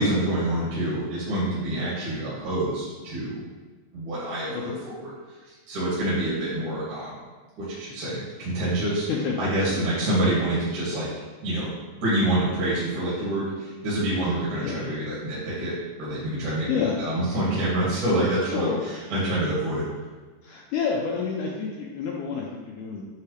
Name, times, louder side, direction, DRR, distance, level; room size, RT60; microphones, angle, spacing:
voice 1, 0.0-3.4 3.9-4.5 4.9-5.1 5.5-7.2 7.6-9.1 9.4-11.1 11.4-11.7 12.0-18.7 19.1-19.8, right 1 dB, 60° right, -9 dB, 3.1 m, -26 dB
voice 2, 4.5-4.8 6.6-6.7 9.1-9.9 10.2-10.3 14.6-14.9 16.4-17.0 18.4-18.8 20.4-23.0, left 6 dB, 90° left, -2 dB, 1.8 m, -29 dB
9.8 x 3.7 x 3.3 m, 1.3 s
omnidirectional pair, 4.3 m